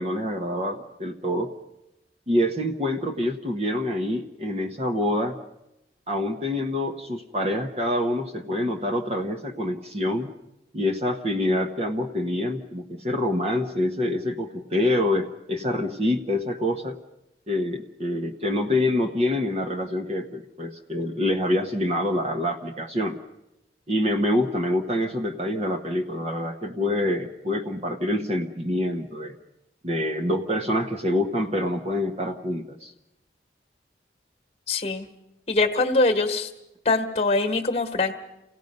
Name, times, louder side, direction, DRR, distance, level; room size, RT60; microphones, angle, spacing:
voice 1, 0.0-1.5 2.3-5.4 6.1-10.3 10.7-17.0 17.5-23.2 23.9-29.4 29.8-32.9, left 1 dB, 35° right, 4 dB, 1.0 m, -26 dB
voice 2, 34.7-35.1 35.5-36.5 36.8-38.1, left 3 dB, 35° left, 6 dB, 1.4 m, -23 dB
29.0 x 17.5 x 5.4 m, 0.89 s
head